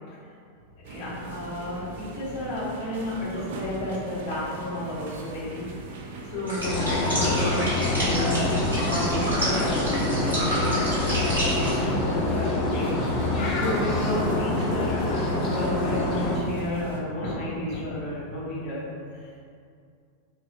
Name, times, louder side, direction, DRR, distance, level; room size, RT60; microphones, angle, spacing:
sound 1, 0.8-17.0, right 3 dB, 55° right, 0.3 m, -40 dB
voice 1, 0.9-5.7 6.3-8.5 8.8-12.9 13.5-18.8, left 1 dB, 55° left, -11 dB, 1.3 m, -32 dB
sound 2, 6.5-11.8, equal, 90° left, 1.2 m, -30 dB
sound 3, 6.6-16.4, left 2 dB, 35° left, 0.4 m, -26 dB
3.0 x 2.0 x 2.8 m, 2.3 s
figure-of-eight pair, 90°, 0 cm